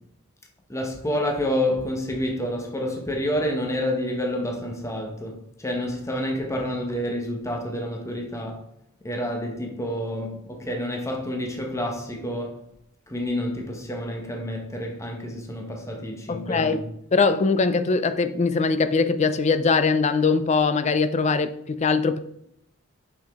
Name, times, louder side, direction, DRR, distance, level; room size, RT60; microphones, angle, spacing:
voice 1, 0.7-8.6 9.0-12.6 13.1-16.9, left 1 dB, 15° left, 0.9 m, -29 dB
voice 2, 16.3-16.8 17.1-22.2, left 4 dB, 30° left, 0.4 m, -21 dB
6.1 x 5.8 x 3.6 m
head